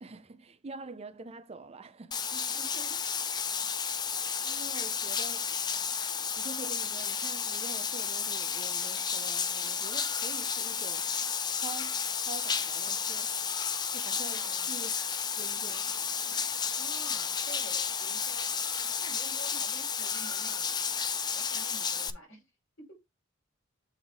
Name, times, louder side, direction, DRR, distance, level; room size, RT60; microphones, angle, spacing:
voice 1, 0.0-2.5 4.4-5.5 6.4-13.5 13.9-14.9 15.4-16.5, right 3 dB, 30° right, 0.5 m, -46 dB
Bathtub (filling or washing), 2.1-22.1, left 6 dB, 20° left, 0.4 m, -32 dB
voice 2, 2.5-3.1 3.6-3.7 4.2-4.6 14.3-14.7 16.7-18.5 18.8-20.7 21.3-22.5 22.8-23.0, right 2 dB, 65° left, 4.8 m, -50 dB
7.8 x 3.5 x 3.6 m
head